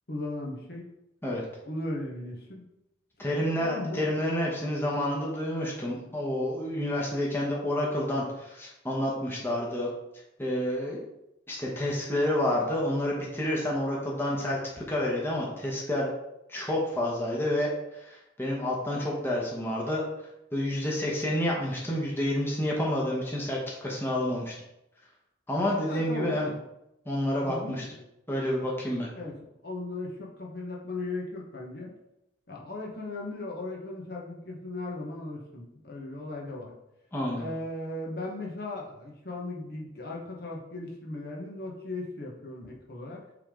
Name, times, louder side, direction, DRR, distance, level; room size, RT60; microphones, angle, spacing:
voice 1, 0.1-0.9 1.6-2.7 3.6-4.0 25.8-26.5 27.4-28.0 29.1-29.4 29.6-31.9 32.5-36.7 37.3-43.2, left 2 dB, 55° left, -2 dB, 1.2 m, -37 dB
voice 2, 3.2-9.9 10.4-11.0 11.5-16.1 16.5-17.7 18.0-20.0 20.5-24.5 25.5-26.5 27.1-27.8 28.3-29.1 37.1-37.5, left 1 dB, 10° left, -4 dB, 1.1 m, -29 dB
8.2 x 3.5 x 3.8 m, 0.87 s
head